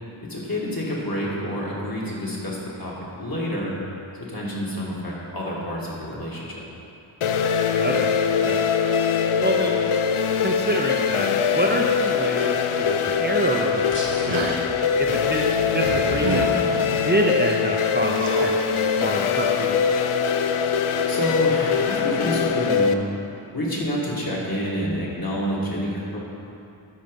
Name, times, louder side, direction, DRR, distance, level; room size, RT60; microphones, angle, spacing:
voice 1, 0.3-3.8 4.3-6.6 21.1-23.0 23.5-26.2, equal, 45° left, -6 dB, 2.2 m, -28 dB
sound 1, 7.2-22.9, left 6 dB, 80° left, 0.5 m, -22 dB
voice 2, 7.7-8.1 8.4-8.6 9.4-9.8 10.4-14.4 15.0-15.5 15.7-16.5 17.0-20.1, right 1 dB, 20° right, -1 dB, 0.6 m, -27 dB
sound 2, 13.9-17.1, equal, 25° left, 1.3 m, -37 dB
sound 3, 14.3-14.7 16.2-17.0 18.1-18.6, right 4 dB, 75° right, 0.8 m, -29 dB
12.5 x 4.6 x 5.4 m, 2.7 s
wide cardioid pair, 65°, 49 cm